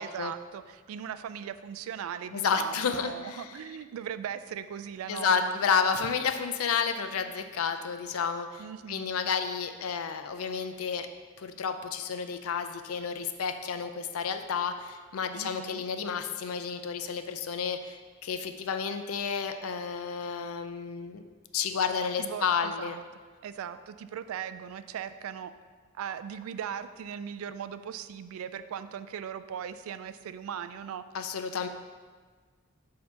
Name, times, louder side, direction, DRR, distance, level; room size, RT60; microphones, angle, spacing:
voice 1, 0.0-5.6 8.6-9.3 15.3-15.8 22.2-23.0 23.4-25.5 25.9-31.0, right 8 dB, 75° right, 12 dB, 0.3 m, -39 dB
voice 2, 2.3-3.4 5.1-11.1 11.4-21.2 21.5-23.0 31.1-31.7, left 6 dB, 90° left, 8 dB, 0.4 m, -31 dB
6.4 x 2.8 x 5.6 m, 1.5 s
head